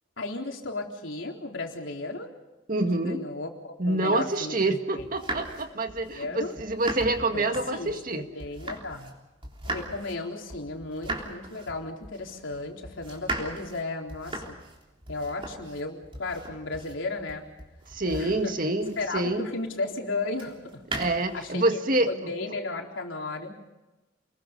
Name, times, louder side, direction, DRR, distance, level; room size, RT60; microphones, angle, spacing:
voice 1, 0.2-2.3 2.9-4.6 4.9-5.1 6.1-6.6 7.3-9.1 9.6-14.6 15.1-17.5 18.1-18.5 19.0-21.0 21.3-21.8 22.1-23.5, left 2 dB, 90° left, 1 dB, 4.0 m, -34 dB
voice 2, 2.7-3.2 3.8-8.3 17.9-19.5 20.9-22.1, right 2 dB, 45° right, 6 dB, 2.0 m, -27 dB
sound 1, 5.0-9.2 9.4-19.4 20.3-21.5, right 2 dB, 30° right, 3.6 m, -38 dB
29.5 x 21.5 x 5.3 m, 1.1 s
head